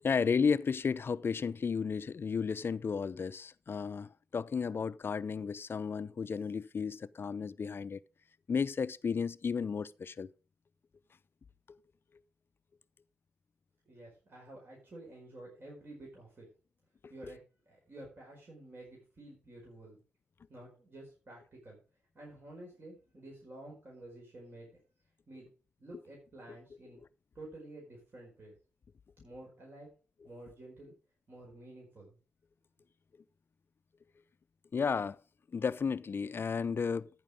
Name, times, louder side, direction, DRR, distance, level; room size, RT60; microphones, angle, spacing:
voice 1, 0.0-8.0 8.5-10.3 34.7-35.2 35.5-37.1, left 5 dB, 45° left, 0.5 m, -33 dB
voice 2, 13.9-16.5 17.1-17.4 17.6-20.0 20.5-21.8 22.1-24.7 25.3-25.5 25.8-27.0 27.3-28.5 29.2-29.9 30.2-30.9 31.3-32.2, right 1 dB, 45° right, 4.9 m, -50 dB
14.0 x 6.2 x 5.1 m
hypercardioid pair, 45°, 5 cm